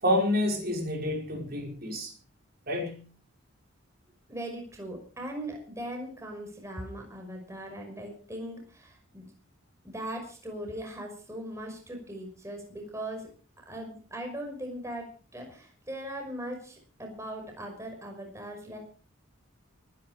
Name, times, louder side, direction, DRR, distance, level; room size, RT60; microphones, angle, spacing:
voice 1, 0.0-2.1 2.7-3.0, left 1 dB, 45° right, 0 dB, 5.1 m, -28 dB
voice 2, 4.3-9.3 9.8-13.3 13.7-18.8, right 1 dB, 15° right, 2 dB, 5.7 m, -39 dB
24.0 x 11.0 x 4.9 m, 0.41 s
head